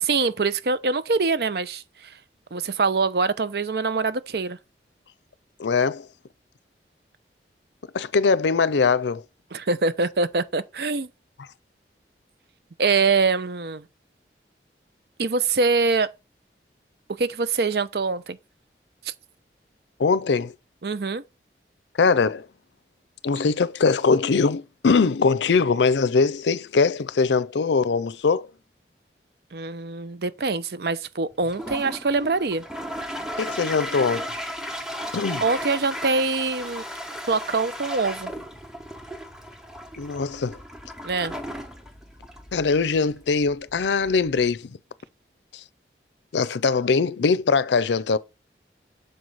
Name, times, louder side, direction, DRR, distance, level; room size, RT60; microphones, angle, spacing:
voice 1, 0.0-2.1 2.5-4.6 9.5-11.1 12.8-13.8 15.2-16.1 17.1-18.4 19.0-19.1 20.8-21.2 29.5-32.6 35.4-36.8 37.3-38.3 41.0-41.3, right 4 dB, 65° right, 0.6 m, -24 dB
voice 2, 5.6-6.1 7.9-9.2 20.0-20.5 22.0-22.5 23.2-28.5 33.4-34.3 35.1-35.4 40.0-40.6 42.5-44.8 46.3-48.2, left 4 dB, 85° left, 0.5 m, -21 dB
Toilet flush, 31.4-44.5, equal, 5° right, 1.0 m, -36 dB
6.6 x 4.7 x 3.9 m
head